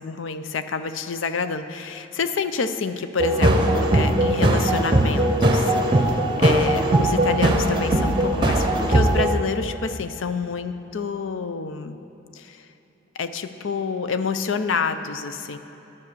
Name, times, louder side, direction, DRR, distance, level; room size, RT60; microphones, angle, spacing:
voice 1, 0.0-5.8 6.1-12.0 12.4-12.6 13.2-15.6, left 5 dB, 75° left, 10 dB, 0.5 m, -28 dB
sound 1, 3.2-9.3, right 1 dB, 25° right, 0.7 m, -19 dB
11.0 x 6.8 x 6.7 m, 2.9 s
head